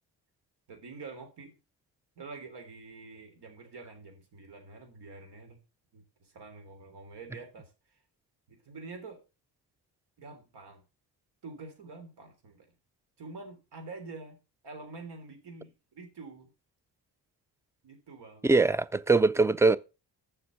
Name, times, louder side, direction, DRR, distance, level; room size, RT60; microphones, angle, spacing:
voice 1, 0.7-1.6 2.2-5.6 5.9-8.0 8.5-9.2 10.2-10.8 11.4-12.7 13.2-14.4 14.6-16.5 17.8-18.5, right 3 dB, 70° right, 3.4 m, -46 dB
voice 2, 18.4-19.8, right 3 dB, 5° right, 0.4 m, -22 dB
7.1 x 6.0 x 6.4 m
cardioid pair, 100°, 42 cm